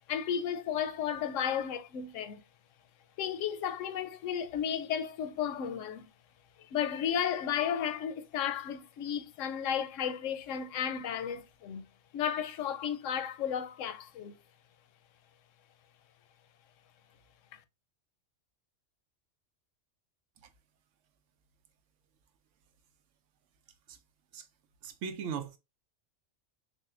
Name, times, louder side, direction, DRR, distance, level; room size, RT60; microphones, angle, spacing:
voice 1, 0.1-2.4 3.2-6.1 6.7-11.9 12.1-14.4 17.5-17.6, left 8 dB, 85° left, 0.9 m, -33 dB
voice 2, 24.8-25.6, right 7 dB, 90° right, 1.0 m, -38 dB
6.3 x 2.1 x 2.4 m
omnidirectional pair, 1.3 m